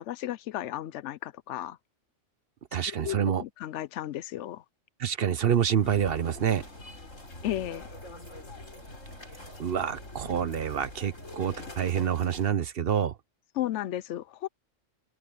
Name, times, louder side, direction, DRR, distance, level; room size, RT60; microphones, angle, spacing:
voice 1, 0.0-1.8 2.9-4.6 7.4-7.9 13.5-14.5, left 13 dB, 75° left, 0.9 m, -34 dB
voice 2, 2.7-3.4 5.0-6.6 9.6-13.2, right 8 dB, 55° right, 0.9 m, -27 dB
sound 1, 5.8-12.5, left 1 dB, 90° left, 5.4 m, -44 dB
omnidirectional pair, 1.3 m